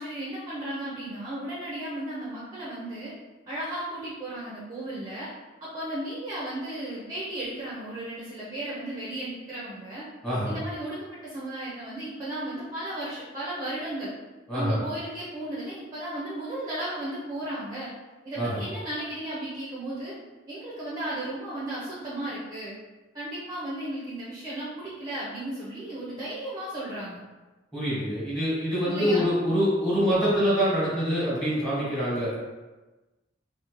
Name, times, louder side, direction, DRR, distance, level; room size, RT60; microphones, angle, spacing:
voice 1, 0.0-3.1 3.5-5.3 5.6-10.1 10.5-11.0 11.2-14.1 14.5-17.9 18.2-20.1 20.5-22.7 23.1-27.2 28.8-29.3, right 1 dB, 20° right, -7 dB, 0.5 m, -35 dB
voice 2, 27.7-32.4, equal, ahead, -10 dB, 1.2 m, -25 dB
2.7 x 2.1 x 2.9 m, 1.2 s
head